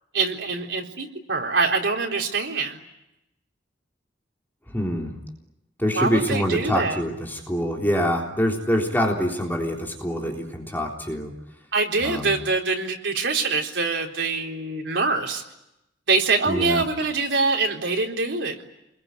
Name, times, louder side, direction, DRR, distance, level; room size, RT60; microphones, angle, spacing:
voice 1, 0.1-2.8 6.0-7.0 11.7-15.4 16.1-18.6, right 3 dB, 80° right, 1 dB, 3.9 m, -24 dB
voice 2, 4.7-5.1 5.8-11.3 12.0-12.3 16.5-16.8, equal, 10° left, 0 dB, 3.6 m, -25 dB
28.5 x 22.0 x 9.5 m, 0.88 s
head